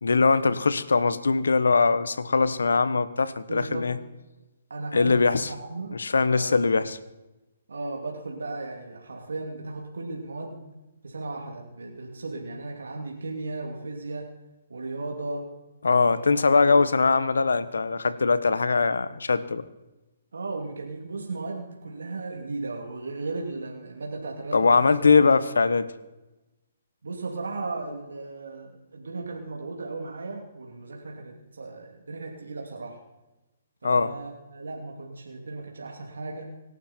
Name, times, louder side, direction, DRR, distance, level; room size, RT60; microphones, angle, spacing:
voice 1, 0.0-4.0 4.9-5.5 5.9-7.0 15.8-19.6 24.5-25.9 33.8-34.1, left 4 dB, 85° left, 14 dB, 1.2 m, -21 dB
voice 2, 3.5-4.0 4.7-6.6 7.7-10.7 11.0-14.3 14.7-15.5 15.8-16.3 20.3-25.0 27.0-33.0 33.8-36.6, right 3 dB, 85° right, 1 dB, 3.0 m, -36 dB
25.5 x 12.0 x 4.5 m, 1.0 s
hypercardioid pair, 145°, 0 cm